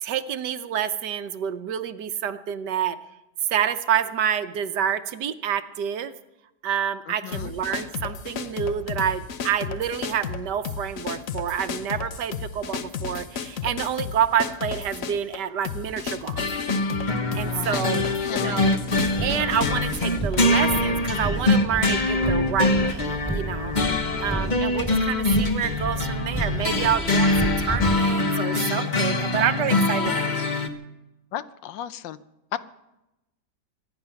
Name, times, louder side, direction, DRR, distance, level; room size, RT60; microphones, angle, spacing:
voice 1, 0.0-3.0 3.5-6.1 6.6-16.4 17.3-18.8 19.2-30.4, right 9 dB, 70° right, 11 dB, 1.3 m, -28 dB
voice 2, 7.1-7.5 17.4-17.9 18.2-18.7 23.9-24.2 31.3-32.2 32.5-32.6, left 11 dB, 80° left, 14 dB, 1.4 m, -35 dB
sound 1, 7.3-20.6, left 6 dB, 55° left, 1.1 m, -33 dB
sound 2, 16.4-30.7, left 2 dB, 30° left, 0.9 m, -24 dB
Car, 18.9-27.9, right 2 dB, 10° left, 2.8 m, -32 dB
24.5 x 10.0 x 5.8 m, 0.93 s
omnidirectional pair, 2.0 m